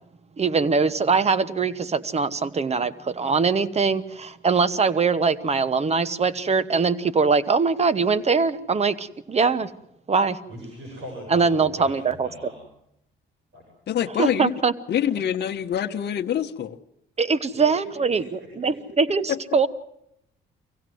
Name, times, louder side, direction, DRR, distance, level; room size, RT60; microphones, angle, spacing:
voice 1, 0.4-9.7 10.1-10.4 11.3-12.3 14.2-14.7 17.2-19.7, right 5 dB, 35° right, 1.1 m, -22 dB
voice 2, 10.5-12.6 13.5-13.6 17.5-19.0, equal, 80° right, 7.5 m, -40 dB
voice 3, 13.9-14.5 14.9-16.8 19.3-19.4, left 9 dB, 55° left, 0.9 m, -25 dB
25.0 x 16.5 x 7.8 m
cardioid pair, 90°, 20 cm